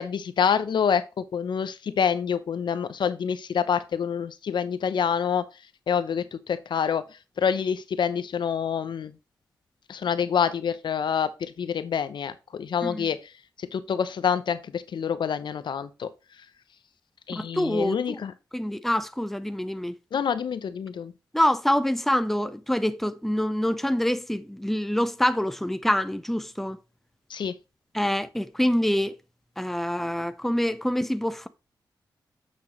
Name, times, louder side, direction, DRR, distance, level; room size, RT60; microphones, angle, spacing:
voice 1, 0.0-5.5 5.9-9.2 9.9-16.1 17.3-18.3 20.1-21.1 27.3-27.5, left 7 dB, 75° left, 0.7 m, -27 dB
voice 2, 17.4-18.2 18.5-19.9 21.3-26.8 27.9-29.2 29.6-31.5, equal, 5° left, 0.7 m, -26 dB
8.6 x 6.1 x 3.1 m
cardioid pair, 65°, 8 cm